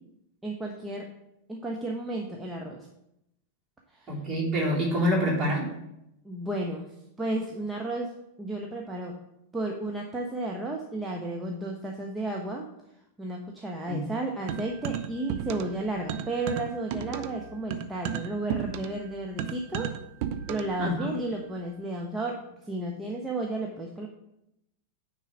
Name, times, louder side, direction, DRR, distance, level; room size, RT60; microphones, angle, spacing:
voice 1, 0.4-1.1 1.5-2.8 3.9-4.1 6.2-6.8 7.2-8.1 8.4-9.1 9.5-12.7 13.2-19.9 20.5-22.4 22.6-24.1, right 2 dB, 10° right, 0 dB, 1.0 m, -33 dB
voice 2, 4.1-5.7 13.9-14.0 20.8-21.2, equal, 25° right, -5 dB, 3.7 m, -26 dB
sound 1, 14.5-15.8 16.1-20.8, right 9 dB, 45° right, 0.6 m, -33 dB
9.8 x 4.1 x 6.1 m, 0.83 s
figure-of-eight pair, 90°, 0 cm